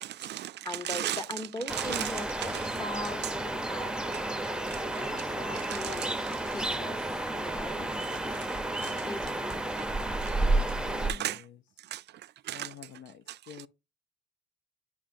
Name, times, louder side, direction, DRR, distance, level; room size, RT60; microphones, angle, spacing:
voice 1, 0.0-1.2 1.7-2.8 4.1-4.8 5.2-5.3 5.5-6.4 8.0-9.1 9.8-10.3 11.0-11.4 11.8-12.9 13.3-13.7, right 13 dB, 60° right, 0.4 m, -38 dB
voice 2, 0.6-2.5 2.8-8.5 9.0-9.6 10.9-11.3, left 1 dB, 20° left, 0.9 m, -41 dB
sound 1, 1.7-11.1, right 2 dB, 5° right, 0.6 m, -31 dB
voice 3, 10.5-11.1 12.5-13.7, left 9 dB, 75° left, 0.5 m, -48 dB
9.7 x 5.8 x 2.6 m
cardioid pair, 90°, 20 cm